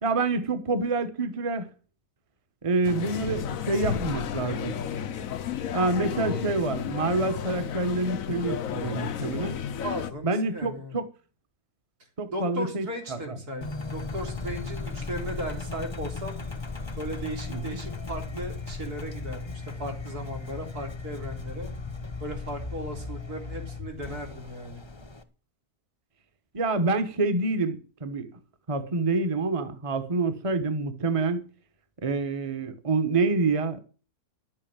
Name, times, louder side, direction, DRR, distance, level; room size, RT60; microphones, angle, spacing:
voice 1, 0.0-1.7 2.6-4.7 5.7-9.6 10.2-11.1 12.2-13.2 17.5-17.6 26.5-28.3 28.7-31.4 32.0-33.8, right 3 dB, 25° right, 1.1 m, -27 dB
sound 1, 2.8-10.1, left 8 dB, 65° left, 1.2 m, -32 dB
voice 2, 9.8-11.0 12.3-16.4 17.0-21.7 22.2-24.8, equal, 80° right, 4.1 m, -36 dB
Engine, 13.6-25.2, left 4 dB, 20° left, 1.0 m, -36 dB
11.5 x 7.9 x 8.9 m
omnidirectional pair, 1.6 m